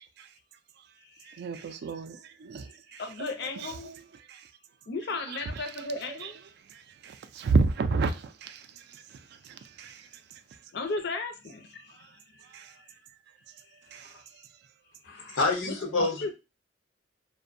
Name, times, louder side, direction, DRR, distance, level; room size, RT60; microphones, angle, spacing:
voice 1, 1.3-3.0 4.3-4.4 7.0-8.6 9.8-10.0 12.5-12.7 13.9-14.1, right 3 dB, 60° right, 0.3 m, -29 dB
voice 2, 2.6-3.9 4.9-6.4 10.7-12.2 14.0-14.2 15.1-15.4 15.7-16.3, left 3 dB, 60° left, 0.5 m, -36 dB
voice 3, 15.0-16.3, left 3 dB, 90° left, 0.8 m, -28 dB
2.5 x 2.1 x 2.5 m
head